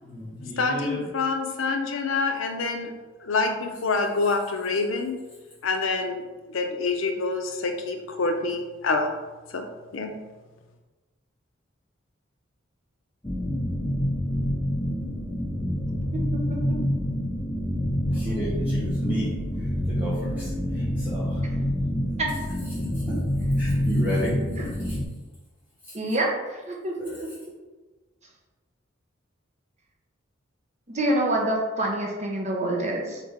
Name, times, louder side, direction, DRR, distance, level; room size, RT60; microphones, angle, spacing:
voice 1, 0.0-1.0 18.1-19.3 19.9-21.4 23.1-23.2 23.6-24.4 27.0-27.1, equal, 10° right, -10 dB, 1.1 m, -32 dB
voice 2, 0.6-2.9 3.2-5.2 5.6-9.1 9.5-9.7 9.9-10.2, left 3 dB, 80° left, 5 dB, 0.5 m, -26 dB
sound 1, 13.2-25.0, equal, 10° left, 0.4 m, -27 dB
voice 3, 16.1-16.8 22.2-22.3 24.6-24.7 25.9-26.9 30.9-33.2, right 1 dB, 35° right, -1 dB, 0.8 m, -27 dB
3.8 x 3.2 x 3.6 m, 1.2 s
head